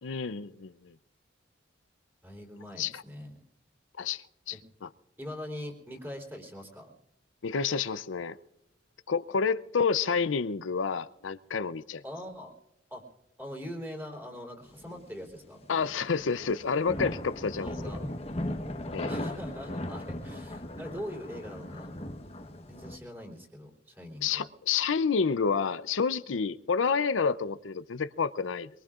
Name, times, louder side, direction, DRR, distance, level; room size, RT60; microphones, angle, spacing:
voice 1, 0.0-0.9 2.8-3.0 4.0-4.6 4.8-4.9 7.4-8.4 9.1-12.0 15.7-18.0 18.9-19.1 24.2-28.7, left 5 dB, 85° left, 0.6 m, -29 dB
voice 2, 2.2-3.4 4.5-4.6 5.2-6.9 12.0-12.5 12.9-13.0 13.4-15.7 17.6-18.0 19.1-21.9 22.7-24.5, equal, 10° right, 3.6 m, -42 dB
sound 1, 14.8-15.2 15.5-23.0, left 1 dB, 30° left, 1.2 m, -38 dB
23.5 x 23.0 x 2.5 m
head